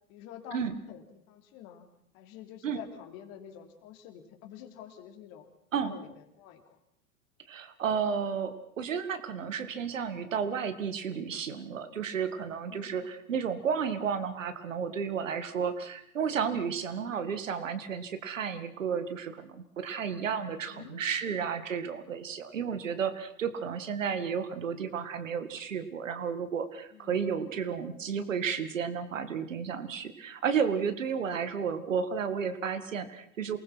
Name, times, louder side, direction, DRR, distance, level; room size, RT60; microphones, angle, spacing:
voice 1, 0.1-0.6 0.9-1.8 2.1-5.5 5.7-6.1 6.4-6.6 12.5-13.1 20.7-21.4 26.9-27.3 31.1-31.3, left 10 dB, 40° left, 6 dB, 3.4 m, -48 dB
voice 2, 7.5-33.6, right 7 dB, 65° right, 10 dB, 2.2 m, -32 dB
27.5 x 20.0 x 6.1 m, 0.71 s
figure-of-eight pair, 95°, 42 cm